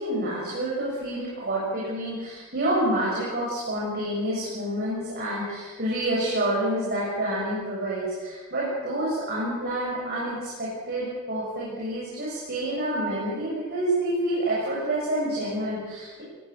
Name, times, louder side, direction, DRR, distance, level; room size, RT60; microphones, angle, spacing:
voice 1, 0.0-16.2, right 1 dB, 50° right, -6 dB, 6.9 m, -28 dB
22.5 x 17.5 x 7.0 m, 1.4 s
head